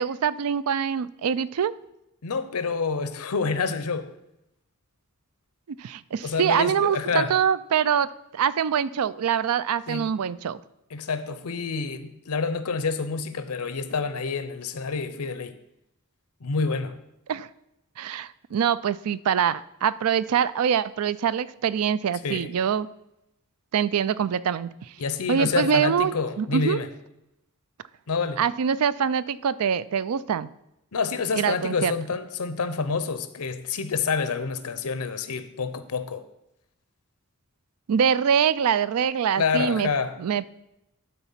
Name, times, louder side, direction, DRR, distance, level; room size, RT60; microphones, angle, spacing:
voice 1, 0.0-1.7 5.8-10.6 17.3-17.5 18.0-22.9 23.7-24.7 25.3-26.8 28.4-30.5 31.4-31.9 37.9-39.9 40.2-40.5, right 7 dB, 80° right, 17 dB, 0.4 m, -24 dB
voice 2, 2.2-4.1 6.2-7.3 9.9-10.1 10.9-15.6 16.4-17.0 22.2-22.5 25.0-26.9 28.1-28.4 30.9-36.2 39.4-40.1, left 5 dB, 90° left, 12 dB, 0.7 m, -28 dB
12.0 x 4.1 x 5.6 m, 0.86 s
head